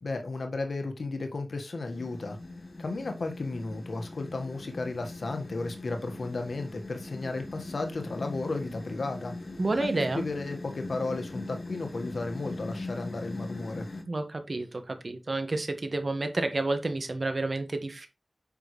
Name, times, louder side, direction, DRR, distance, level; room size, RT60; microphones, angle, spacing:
voice 1, 0.0-2.4 2.8-9.3 9.8-13.9, left 3 dB, 90° left, 1.5 m, -34 dB
sound 1, 1.9-14.0, left 2 dB, 50° left, 1.9 m, -40 dB
voice 2, 9.6-10.2 14.1-18.1, right 2 dB, 60° right, 1.6 m, -30 dB
9.0 x 6.3 x 3.2 m
wide cardioid pair, 75°, 0 cm